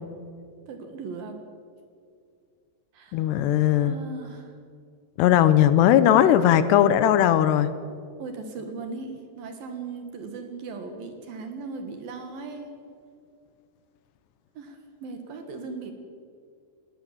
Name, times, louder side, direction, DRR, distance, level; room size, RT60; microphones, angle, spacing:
voice 1, 0.7-1.4 2.9-3.2 3.8-4.5 8.2-12.7 14.6-15.9, right 4 dB, 60° right, 6 dB, 3.0 m, -38 dB
voice 2, 3.1-4.0 5.2-7.7, left 11 dB, 80° left, 13 dB, 2.8 m, -18 dB
19.0 x 18.5 x 7.4 m, 2.3 s
omnidirectional pair, 5.1 m